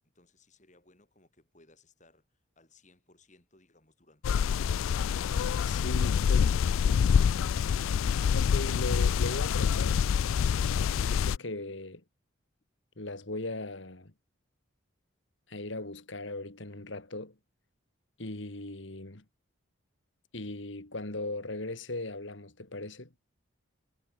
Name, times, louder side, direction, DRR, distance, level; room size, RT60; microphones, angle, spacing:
voice 1, 0.1-4.7, left 2 dB, 35° left, 6.3 m, -63 dB
sound 1, 4.2-11.4, left 7 dB, 80° left, 0.3 m, -26 dB
voice 2, 5.6-6.6 8.2-10.0 10.9-12.0 13.0-14.1 15.5-17.3 18.2-19.2 20.3-23.1, left 2 dB, 65° left, 2.5 m, -38 dB
head